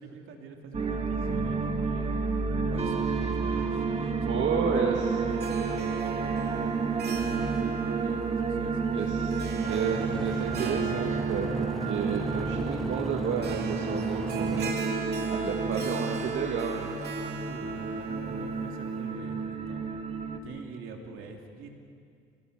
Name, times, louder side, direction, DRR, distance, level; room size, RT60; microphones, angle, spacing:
voice 1, 0.0-2.1 2.7-9.6 15.2-15.8 17.4-19.9 20.4-21.7, right 4 dB, 90° right, 2 dB, 3.0 m, -46 dB
sound 1, 0.7-20.4, right 4 dB, 30° right, 2.2 m, -30 dB
voice 2, 4.3-5.2 8.9-14.8 15.3-16.9, right 6 dB, 75° right, 1 dB, 2.0 m, -31 dB
Harp, 5.3-19.0, right 5 dB, 55° right, 2.6 m, -39 dB
sound 2, 9.6-14.7, equal, ahead, 0.8 m, -39 dB
29.0 x 18.0 x 6.8 m, 2.3 s
cardioid pair, 90°, 20 cm